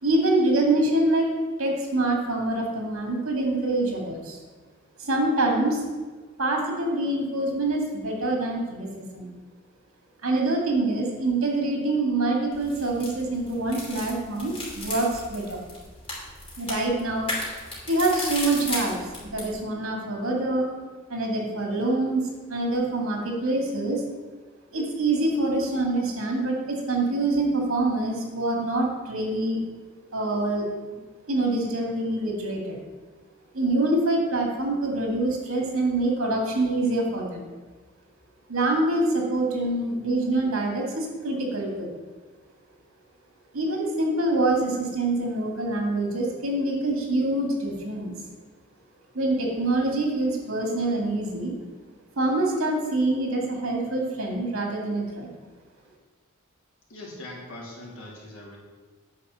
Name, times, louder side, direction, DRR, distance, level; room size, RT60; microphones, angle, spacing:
voice 1, 0.0-1.3 1.6-4.4 5.0-5.8 6.4-9.3 10.2-15.6 16.6-17.3 17.9-20.7 21.1-24.0 24.7-29.6 30.1-30.6 30.9-31.0 31.3-32.8 33.5-37.5 38.5-41.9 43.5-48.1 49.1-51.5 52.2-55.3, right 2 dB, 75° right, 0 dB, 2.0 m, -25 dB
sound 1, 12.5-19.5, left 2 dB, 25° left, 2.7 m, -35 dB
voice 2, 56.9-58.6, left 1 dB, 75° left, -3 dB, 2.3 m, -41 dB
9.4 x 4.3 x 6.7 m, 1.3 s
head